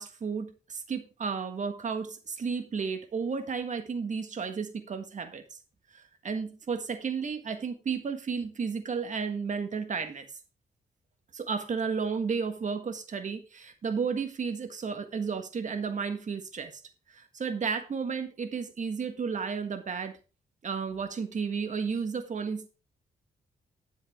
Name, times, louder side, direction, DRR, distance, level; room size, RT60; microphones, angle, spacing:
voice 1, 0.0-5.4 5.9-10.3 11.3-16.7 17.1-20.1 20.6-22.7, right 5 dB, 50° right, 1.6 m, -33 dB
10.0 x 7.9 x 3.6 m
cardioid pair, 80°, 16 cm